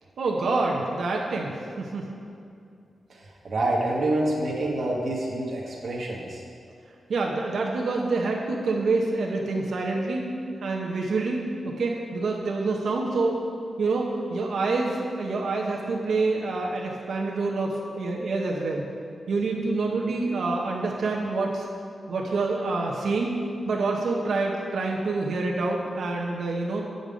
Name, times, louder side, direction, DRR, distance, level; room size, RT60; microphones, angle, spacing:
voice 1, 0.2-2.0 7.1-10.3 10.6-13.4 13.8-18.9 19.3-21.7 22.1-23.4 23.6-26.8, right 3 dB, 70° right, -1 dB, 0.8 m, -27 dB
voice 2, 3.4-6.4, right 1 dB, 50° right, -4 dB, 1.0 m, -27 dB
8.1 x 5.2 x 5.1 m, 2.4 s
wide cardioid pair, 145°, 0 cm